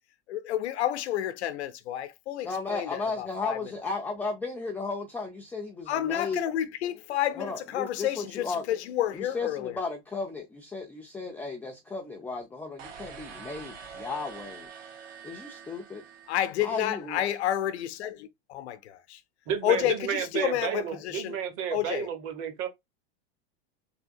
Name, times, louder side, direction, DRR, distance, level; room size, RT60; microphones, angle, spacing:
voice 1, 0.3-3.7 5.9-9.8 16.3-19.2 19.6-21.4 21.7-22.1, left 12 dB, 80° left, 0.7 m, -30 dB
voice 2, 2.4-6.4 7.4-8.7 9.1-14.7 15.2-16.0 16.6-17.2, left 3 dB, 5° left, 0.4 m, -35 dB
sound 1, 12.8-17.0, right 6 dB, 70° right, 1.3 m, -45 dB
voice 3, 19.5-22.7, right 8 dB, 40° right, 1.1 m, -31 dB
3.5 x 2.7 x 2.6 m
supercardioid pair, 135°, 33 cm